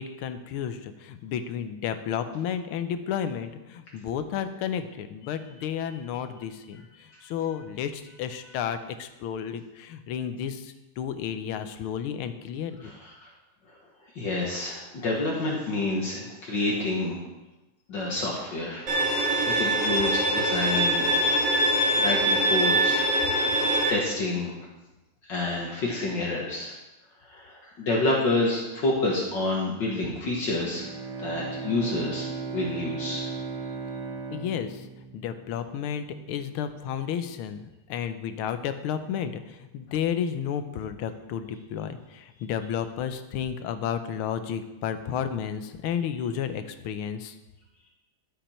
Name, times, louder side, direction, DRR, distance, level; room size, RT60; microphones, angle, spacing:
voice 1, 0.0-6.8 7.2-12.9 34.3-34.8 35.1-37.6 37.9-39.4 39.7-47.3, left 8 dB, 80° left, 9 dB, 1.6 m, -32 dB
voice 2, 12.8-13.3 14.2-17.2 17.9-18.9 19.5-21.1 21.9-23.0 23.5-24.5 25.3-26.7 27.2-30.9 31.2-32.3 32.5-33.2, left 2 dB, 60° left, -3 dB, 2.1 m, -28 dB
Bowed string instrument, 18.9-23.9, right 1 dB, 60° right, 2.7 m, -23 dB
Bowed string instrument 2, 30.7-35.9, right 4 dB, 90° right, 2.2 m, -36 dB
12.0 x 7.8 x 4.4 m, 1.1 s
omnidirectional pair, 2.3 m